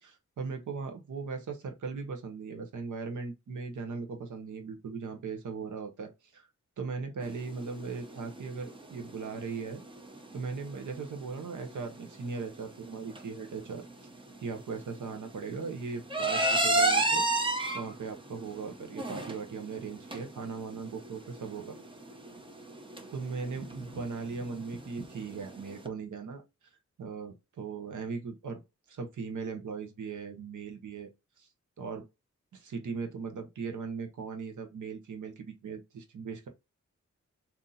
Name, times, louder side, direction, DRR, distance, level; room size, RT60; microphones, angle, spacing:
voice 1, 0.0-6.5 6.8-9.8 10.3-13.8 14.4-17.3 17.7-21.8 23.1-26.4 27.0-28.6 28.9-31.1 31.4-31.5 31.8-32.0 32.5-36.5, right 5 dB, 90° right, 1.0 m, -38 dB
sound 1, 7.2-25.9, right 2 dB, 15° right, 0.7 m, -34 dB
3.9 x 2.8 x 2.6 m
wide cardioid pair, 110°, 29 cm